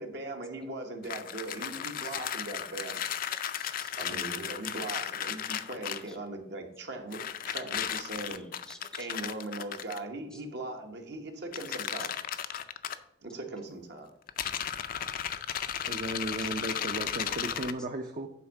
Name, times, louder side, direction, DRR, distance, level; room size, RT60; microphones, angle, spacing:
voice 1, 0.0-3.0 3.9-8.4 9.0-12.1 13.2-14.1, right 2 dB, 65° right, 3 dB, 1.3 m, -39 dB
sound 1, 1.0-6.1 7.1-10.0 11.5-13.0 14.3-17.7, left 9 dB, 50° left, 0.4 m, -35 dB
voice 2, 3.3-4.1 4.9-5.0 5.7-6.2 8.2-9.1 10.3-10.4 12.0-12.1 12.5-12.6 16.4-16.8, left 1 dB, 5° left, 6 dB, 0.6 m, -53 dB
voice 3, 15.8-18.3, right 1 dB, 45° right, 3 dB, 0.6 m, -36 dB
9.1 x 3.6 x 6.5 m, 0.75 s
head